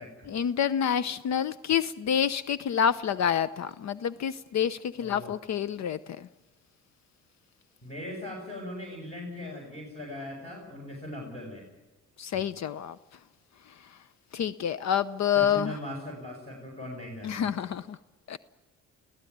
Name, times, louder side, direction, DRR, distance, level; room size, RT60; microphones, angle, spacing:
voice 1, 0.3-6.3 12.2-13.0 14.3-15.8 17.2-18.0 18.3-18.4, left 8 dB, 60° left, 17 dB, 0.8 m, -28 dB
voice 2, 5.0-5.3 7.8-11.6 15.3-17.7, left 1 dB, 20° left, 0 dB, 6.4 m, -40 dB
24.5 x 16.0 x 9.4 m, 1.1 s
cardioid pair, 90°, 30 cm